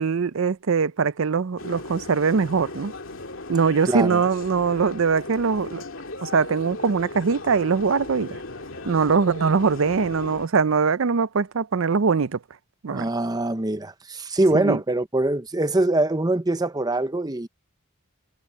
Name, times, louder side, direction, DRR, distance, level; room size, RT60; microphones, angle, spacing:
voice 1, 0.0-2.9 3.5-5.8 6.2-8.4 8.8-12.4 12.8-13.1 14.6-14.8, right 5 dB, 70° right, 0.5 m, -22 dB
sound 1, 1.6-10.5, left 2 dB, 65° left, 2.4 m, -37 dB
voice 2, 3.9-4.2 12.9-17.5, right 2 dB, 20° right, 0.8 m, -23 dB
head